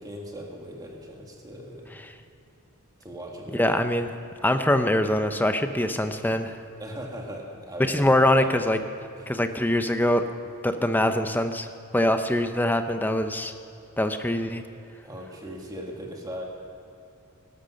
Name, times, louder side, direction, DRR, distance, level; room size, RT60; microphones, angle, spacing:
voice 1, 0.0-2.0 3.0-3.8 6.8-8.5 9.2-9.3 15.0-16.4, equal, 20° right, 0 dB, 1.9 m, -39 dB
voice 2, 3.6-4.1 4.4-6.6 7.9-8.8 9.3-10.2 10.6-11.7 11.9-13.5 14.0-14.6, left 1 dB, 10° left, 8 dB, 0.7 m, -23 dB
17.0 x 12.0 x 6.5 m, 2.6 s
head